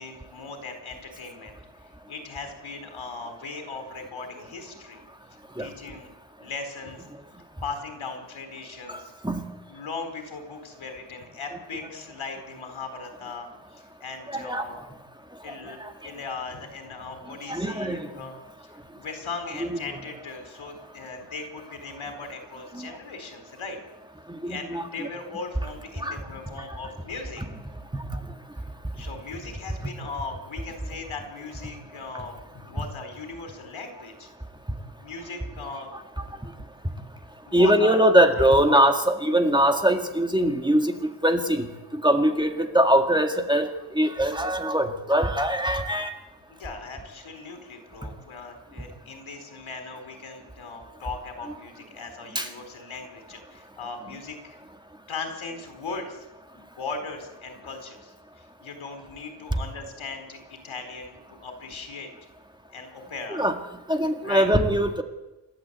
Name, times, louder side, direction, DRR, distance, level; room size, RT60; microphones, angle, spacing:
voice 1, 0.0-1.6 1.8-5.0 5.6-6.1 6.4-7.1 7.6-9.1 9.7-14.8 15.4-18.3 18.6-18.7 18.9-23.8 24.4-27.4 28.9-34.3 35.0-35.9 36.2-36.4 37.4-38.8 46.5-54.6 55.1-56.3 56.5-62.1 62.7-63.4 64.2-64.5, left 4 dB, 90° left, 6 dB, 4.3 m, -38 dB
voice 2, 8.9-9.5 14.3-14.7 15.5-15.6 15.8-15.9 17.5-18.1 19.7-19.8 22.7-22.9 24.3-25.1 26.0-26.2 27.9-28.0 37.5-46.1 52.4-52.5 63.3-63.6 63.9-65.0, right 1 dB, 10° right, 5 dB, 2.0 m, -22 dB
28.5 x 13.0 x 8.2 m, 1.0 s
wide cardioid pair, 125°, 47 cm